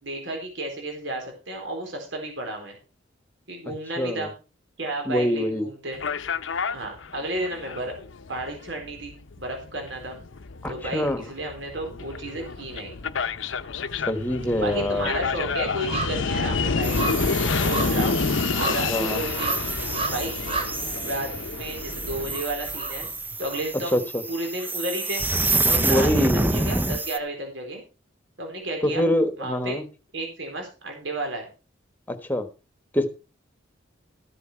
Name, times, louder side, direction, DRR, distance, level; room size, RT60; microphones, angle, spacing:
voice 1, 0.0-2.8 3.5-4.3 4.8-6.0 6.7-8.0 8.3-10.2 10.7-13.0 14.6-19.6 20.1-20.3 20.9-23.1 23.4-24.0 24.3-25.2 25.7-27.8 28.4-29.1 29.4-29.8 30.1-31.5, right 1 dB, 75° right, 4.2 m, -32 dB
voice 2, 4.0-4.3 5.1-5.7 10.6-11.2 14.1-15.1 18.9-19.2 23.9-24.0 25.8-26.5 28.8-29.8 32.1-32.5 32.9-33.1, left 1 dB, 10° left, 1.3 m, -24 dB
sound 1, 5.9-22.4, left 4 dB, 85° left, 0.7 m, -29 dB
sound 2, 12.9-13.7 14.0-24.0 24.3-24.4, right 2 dB, 30° right, 3.7 m, -35 dB
sound 3, 16.8-27.2, right 2 dB, 10° right, 0.7 m, -28 dB
14.5 x 8.3 x 4.5 m
head